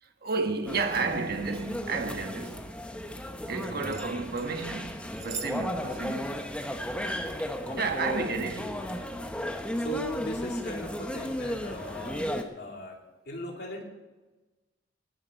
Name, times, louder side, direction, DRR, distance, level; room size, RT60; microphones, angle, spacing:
voice 1, 0.0-2.7 3.4-6.5 7.4-7.5 7.7-8.8, right 4 dB, 55° right, 1.3 m, -32 dB
sound 1, 0.7-12.4, equal, 5° left, 1.1 m, -35 dB
voice 2, 3.7-4.0 7.6-8.0 9.6-12.3 12.6-13.0 13.3-13.8, left 1 dB, 60° left, 2.8 m, -38 dB
sound 2, 3.9-4.5 5.0-5.6 5.8-5.9 6.5-7.2 8.0-8.3 8.8-9.0, right 5 dB, 40° right, 1.3 m, -42 dB
19.0 x 10.5 x 4.5 m
head